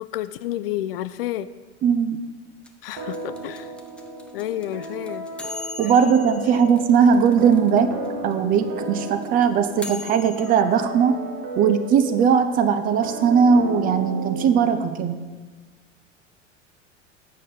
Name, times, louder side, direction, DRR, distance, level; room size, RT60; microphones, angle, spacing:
voice 1, 0.0-1.5 2.8-3.7 4.3-5.3, left 13 dB, 50° left, 14 dB, 0.4 m, -30 dB
voice 2, 1.8-2.2 5.8-7.9 8.2-11.2 11.6-15.2, right 7 dB, 25° right, 10 dB, 0.5 m, -19 dB
sound 1, 2.6-7.8 8.0-8.1 8.3-10.6, left 3 dB, 5° left, 0.8 m, -38 dB
sound 2, 3.0-15.4, right 2 dB, 40° right, 1.3 m, -34 dB
8.4 x 5.6 x 6.6 m, 1.3 s
figure-of-eight pair, 80°, 37 cm